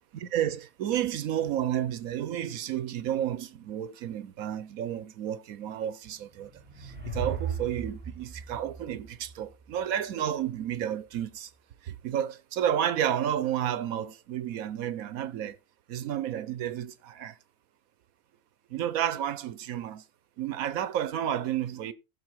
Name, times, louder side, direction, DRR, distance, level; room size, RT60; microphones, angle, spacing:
voice 1, 0.1-11.5 11.8-15.6 15.9-17.4 18.7-20.0 20.4-21.9, right 10 dB, 85° right, 1.2 m, -31 dB
sound 1, 6.2-9.7, right 5 dB, 5° right, 2.9 m, -37 dB
15.5 x 6.5 x 4.6 m
omnidirectional pair, 1.4 m